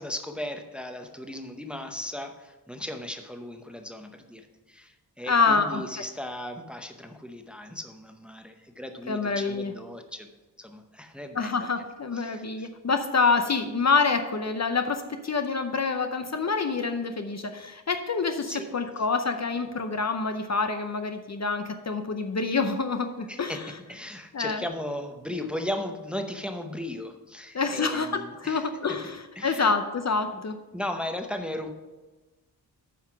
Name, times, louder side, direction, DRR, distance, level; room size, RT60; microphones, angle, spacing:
voice 1, 0.0-10.3 10.6-11.8 12.1-12.7 18.5-18.7 23.3-28.6 29.4-29.7 30.3-30.4 30.7-31.7, left 1 dB, 5° right, 5 dB, 0.7 m, -36 dB
voice 2, 5.3-5.8 9.1-9.7 11.3-23.7 24.3-24.6 27.5-30.6, left 4 dB, 40° left, 7 dB, 0.7 m, -27 dB
9.3 x 5.7 x 5.8 m, 1.1 s
wide cardioid pair, 115°, 41 cm